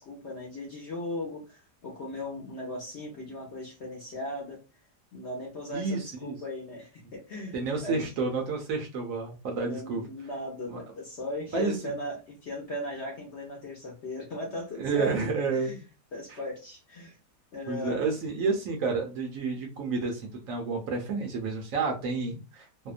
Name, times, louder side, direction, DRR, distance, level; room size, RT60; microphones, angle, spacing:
voice 1, 0.0-4.6 5.1-8.1 9.5-15.8 16.1-17.2 17.5-18.2, left 1 dB, 55° left, 0.8 m, -38 dB
voice 2, 5.7-6.4 7.5-10.0 10.7-10.8 11.5-11.9 14.7-15.8 17.7-22.7, right 4 dB, 65° right, 0.9 m, -30 dB
2.7 x 2.1 x 2.4 m
omnidirectional pair, 1.7 m